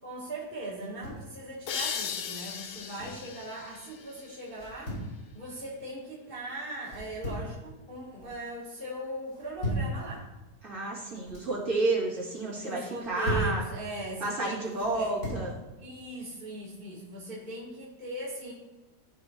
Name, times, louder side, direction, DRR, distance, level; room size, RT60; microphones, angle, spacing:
voice 1, 0.0-10.3 12.6-15.1 15.8-18.5, right 1 dB, 35° right, -8 dB, 1.8 m, -39 dB
sound 1, 0.7-1.3 2.6-3.3 4.5-5.1 6.8-7.6 8.0-8.4 9.3-10.0 11.0-11.5 12.8-13.6 14.7-15.5, equal, 85° left, 3.7 m, -36 dB
sound 2, 1.7-5.1, left 7 dB, 65° left, 0.9 m, -38 dB
voice 2, 10.6-13.6 14.2-15.5, right 2 dB, 65° right, -6 dB, 3.0 m, -31 dB
14.0 x 4.9 x 2.9 m, 1.1 s
omnidirectional pair, 1.7 m